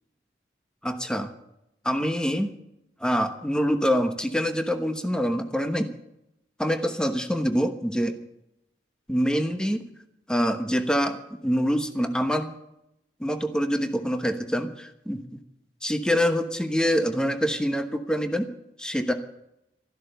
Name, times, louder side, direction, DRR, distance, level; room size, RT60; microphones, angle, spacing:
voice 1, 0.8-1.3 1.8-2.5 3.0-5.9 6.6-8.2 9.1-9.8 10.3-12.5 13.2-15.4 15.8-18.5 18.8-19.1, equal, 5° left, 7 dB, 1.1 m, -25 dB
13.5 x 12.0 x 6.8 m, 0.82 s
head